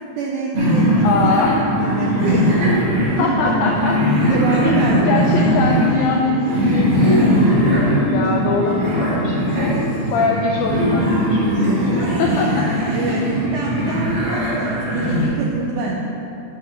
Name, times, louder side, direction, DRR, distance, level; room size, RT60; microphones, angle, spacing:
voice 1, 0.2-1.4 1.8-2.5 3.2-3.7 4.3-5.1 12.9-15.9, right 3 dB, 80° right, -2 dB, 1.7 m, -24 dB
sound 1, 0.5-15.3, equal, 60° right, 1.7 m, -19 dB
voice 2, 1.0-1.6 3.2-4.0 4.6-4.8 5.0-9.7 10.1-12.7 13.1-13.3, left 4 dB, 85° left, -1 dB, 1.7 m, -22 dB
8.1 x 3.5 x 5.8 m, 2.9 s
omnidirectional pair, 3.9 m